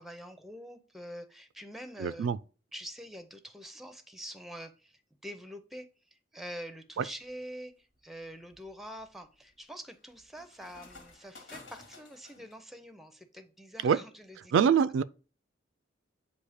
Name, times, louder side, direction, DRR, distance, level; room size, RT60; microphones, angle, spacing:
voice 1, 0.0-2.3 2.7-14.7, equal, ahead, 0.5 m, -46 dB
voice 2, 2.0-2.4 7.0-7.1 13.8-14.0 14.5-15.0, right 7 dB, 80° right, 0.3 m, -24 dB
sound 1, 7.0-7.4 7.9-12.6, left 3 dB, 80° left, 1.7 m, -54 dB
8.1 x 2.8 x 4.9 m
head